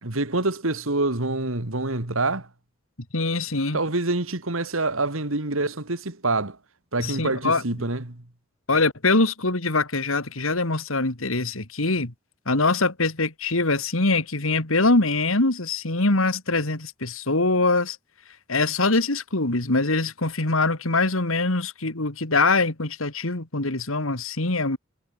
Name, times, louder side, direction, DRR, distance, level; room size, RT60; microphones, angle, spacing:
voice 1, 0.0-2.5 3.7-6.6 6.9-8.2, right 2 dB, 80° right, 2.6 m, -26 dB
voice 2, 3.1-3.8 7.0-7.6 8.7-12.1 12.5-18.0 18.5-24.8, left 3 dB, 80° left, 2.8 m, -23 dB
head